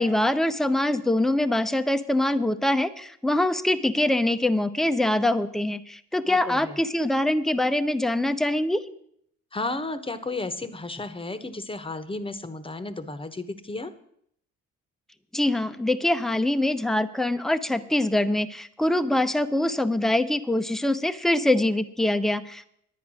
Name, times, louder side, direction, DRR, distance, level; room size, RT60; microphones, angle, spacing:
voice 1, 0.0-8.8 15.3-22.7, left 1 dB, ahead, 10 dB, 0.7 m, -24 dB
voice 2, 6.3-6.8 9.5-13.9, left 2 dB, 15° left, 12 dB, 1.0 m, -33 dB
10.5 x 9.2 x 6.2 m, 0.70 s
cardioid pair, 90°, 30 cm